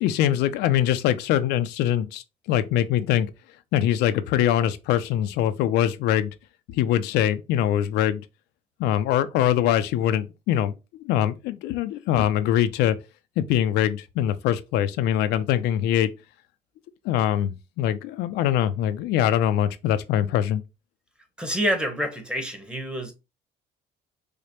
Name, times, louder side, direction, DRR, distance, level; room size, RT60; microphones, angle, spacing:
voice 1, 0.0-3.3 3.7-6.3 6.7-8.2 8.8-10.7 11.0-13.0 13.4-16.1 17.0-20.6, left 11 dB, 85° left, 0.4 m, -23 dB
voice 2, 21.4-23.1, equal, 5° right, 0.9 m, -27 dB
4.9 x 2.1 x 2.8 m
cardioid pair, 110°, 17 cm